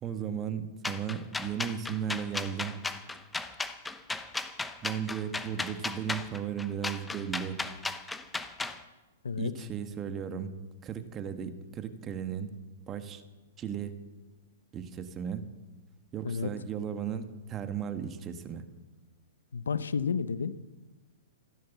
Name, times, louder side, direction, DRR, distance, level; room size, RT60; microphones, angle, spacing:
voice 1, 0.0-2.7 4.8-7.6 9.4-10.5 10.8-12.5 12.9-13.2 13.6-13.9 14.7-15.4 16.1-18.6, right 8 dB, 25° right, 9 dB, 1.4 m, -35 dB
sound 1, 0.8-8.8, left 3 dB, 10° left, 0.9 m, -35 dB
voice 2, 19.5-20.6, left 5 dB, 85° left, 16 dB, 0.8 m, -31 dB
15.0 x 12.0 x 7.1 m, 1.2 s
hypercardioid pair, 125°, 0 cm